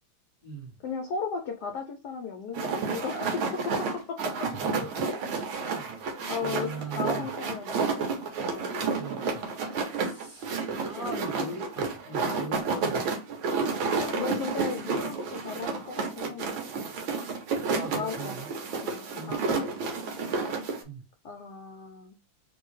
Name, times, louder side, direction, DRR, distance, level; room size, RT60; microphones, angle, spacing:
voice 1, 0.8-4.5 6.3-8.1 8.4-8.9 10.7-11.1 14.0-16.6 17.9-18.4 18.8-19.9 21.2-22.2, left 5 dB, 70° left, 1.0 m, -36 dB
sound 1, 2.5-20.8, right 4 dB, 70° right, 1.8 m, -31 dB
voice 2, 5.6-5.9 6.4-7.3 9.0-9.4 9.9-13.1 17.7-18.5 19.0-19.3 20.8-21.0, right 3 dB, 35° right, 1.9 m, -40 dB
3.8 x 2.7 x 4.6 m
omnidirectional pair, 2.4 m